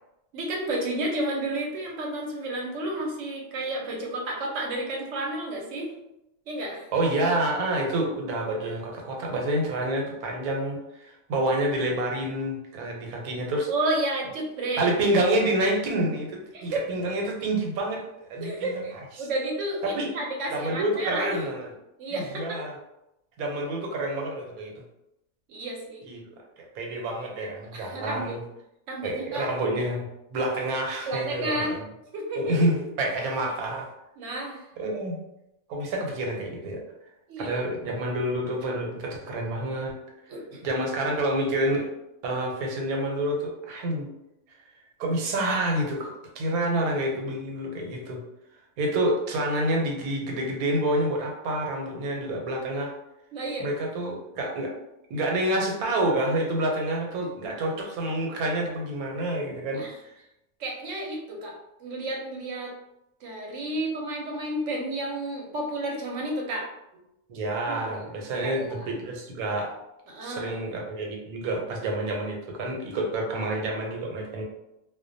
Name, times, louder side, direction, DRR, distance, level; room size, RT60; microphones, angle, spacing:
voice 1, 0.3-5.9 6.5-6.9 13.7-14.9 16.5-16.8 18.4-21.5 22.0-22.6 25.5-26.0 27.7-28.3 28.9-29.5 31.1-31.8 32.1-32.7 34.2-34.6 37.3-37.7 40.3-40.6 53.3-53.7 59.7-59.9 60.6-61.5 61.8-62.7 63.2-66.7 67.7-68.1 68.4-68.9 70.1-70.5, right 1 dB, 65° right, -1 dB, 0.9 m, -31 dB
voice 2, 6.9-13.7 14.8-18.8 19.2-19.3 19.8-20.1 20.5-21.7 22.1-22.8 23.4-24.7 26.1-28.4 29.0-31.8 32.4-33.9 34.8-35.2 35.7-36.8 37.4-39.9 40.6-41.9 42.2-44.1 45.0-48.2 48.8-52.9 53.6-54.7 55.1-59.8 67.3-69.7 70.2-74.4, right 1 dB, 90° right, 0 dB, 1.1 m, -28 dB
2.3 x 2.1 x 2.5 m, 0.87 s
omnidirectional pair, 1.5 m